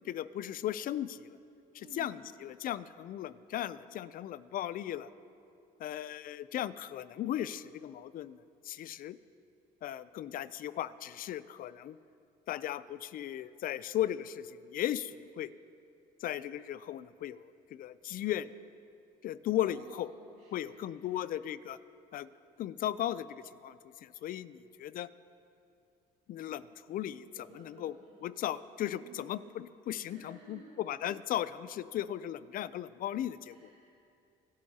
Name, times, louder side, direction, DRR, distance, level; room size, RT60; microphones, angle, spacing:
voice 1, 0.1-1.3 1.7-5.1 5.8-8.4 8.6-9.2 9.8-12.0 12.5-15.5 16.2-18.5 19.2-20.1 20.5-21.8 22.1-22.3 22.6-25.1 26.3-27.9 28.2-33.7, left 12 dB, 55° left, 16 dB, 0.4 m, -37 dB
voice 2, 1.8-2.3 19.6-21.2 27.3-28.3 29.0-29.8 30.0-30.8 33.4-33.9, right 4 dB, 75° right, -7 dB, 2.3 m, -55 dB
22.5 x 11.0 x 2.8 m, 2.5 s
cardioid pair, 110°, 17 cm